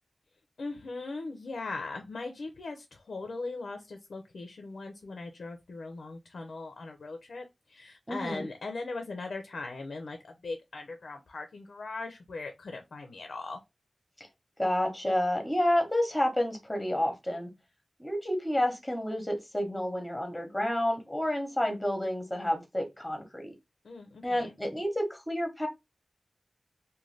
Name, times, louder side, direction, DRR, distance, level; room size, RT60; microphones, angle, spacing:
voice 1, 0.6-13.6 23.8-24.6, left 3 dB, 90° left, 0.5 m, -39 dB
voice 2, 8.1-8.5 14.2-14.3 14.6-17.5 18.0-23.5 24.2-25.7, left 1 dB, 10° left, 0.8 m, -30 dB
2.5 x 2.2 x 3.1 m
wide cardioid pair, 80°, 0 cm